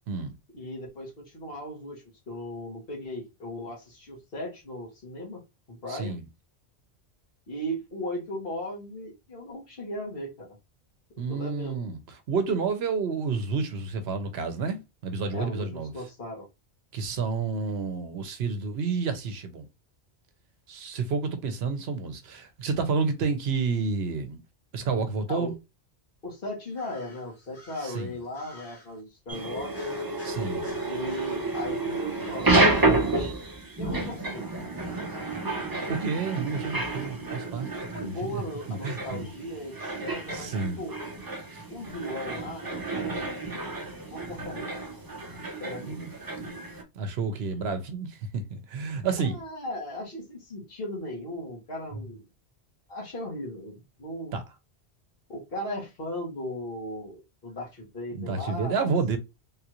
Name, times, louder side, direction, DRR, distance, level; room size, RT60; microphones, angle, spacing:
voice 1, 0.5-5.4 5.7-6.2 7.5-10.6 11.3-11.9 15.3-16.5 25.3-25.5 26.2-30.0 30.8-33.3 33.8-34.7 37.9-41.0 41.7-43.8 44.1-44.7 45.6-46.0 49.2-52.2 52.9-54.3 55.3-58.7, left 1 dB, 60° left, 1.5 m, -37 dB
voice 2, 5.9-6.2 11.2-15.9 16.9-19.7 20.7-24.4 24.7-25.5 27.8-28.1 30.2-30.7 35.9-38.4 38.7-39.3 40.3-40.8 41.5-41.6 45.8-46.1 46.9-49.4 54.3-54.4 58.1-59.2, right 4 dB, 75° right, 0.9 m, -30 dB
sound 1, 26.7-29.0 29.7-33.7, left 1 dB, 85° left, 1.6 m, -52 dB
sound 2, 29.3-46.8, right 2 dB, 25° right, 0.5 m, -30 dB
3.6 x 2.4 x 2.9 m
omnidirectional pair, 1.1 m